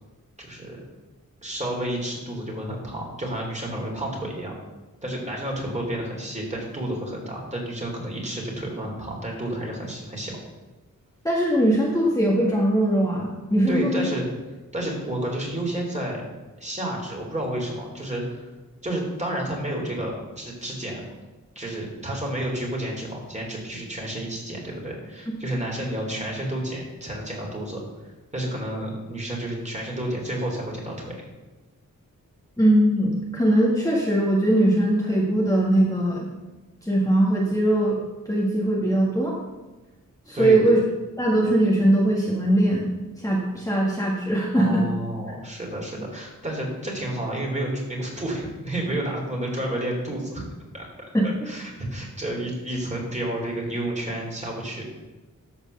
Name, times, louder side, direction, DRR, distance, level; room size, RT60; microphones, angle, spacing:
voice 1, 0.4-0.8 1.4-4.5 5.0-10.4 13.7-14.3 14.7-16.2 16.6-18.5 18.8-21.0 21.6-27.8 28.3-31.1 40.3-40.6 44.5-50.4 50.7-54.8, right 1 dB, 20° right, -2 dB, 3.3 m, -30 dB
voice 2, 11.2-14.1 32.6-36.3 36.8-38.0 38.3-39.3 40.3-40.8 41.2-42.9 43.2-44.8 51.1-51.3, right 1 dB, 10° left, -4 dB, 1.6 m, -21 dB
13.0 x 4.7 x 6.7 m, 1.1 s
wide cardioid pair, 100°, 33 cm